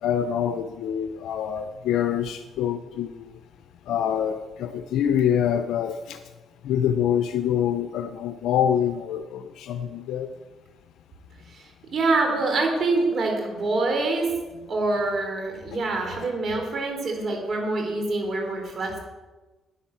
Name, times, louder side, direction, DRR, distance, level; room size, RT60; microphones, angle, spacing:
voice 1, 0.0-3.3 3.9-6.2 6.6-10.3, left 9 dB, 85° left, 9 dB, 0.6 m, -25 dB
voice 2, 11.5-14.3 14.7-19.0, right 3 dB, 50° right, 2 dB, 4.0 m, -25 dB
10.0 x 9.9 x 7.3 m, 1.2 s
cardioid pair, 90°, 0 cm